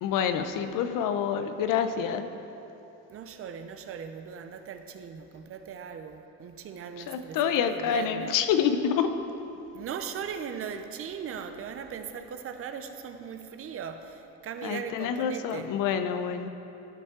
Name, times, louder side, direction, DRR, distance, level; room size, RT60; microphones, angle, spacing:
voice 1, 0.0-2.3 7.0-9.1 14.6-16.5, left 8 dB, 75° left, 9 dB, 0.7 m, -27 dB
voice 2, 3.1-8.3 9.7-15.7, right 7 dB, 45° right, 8 dB, 0.6 m, -39 dB
14.5 x 5.3 x 3.7 m, 2.9 s
cardioid pair, 135°, 32 cm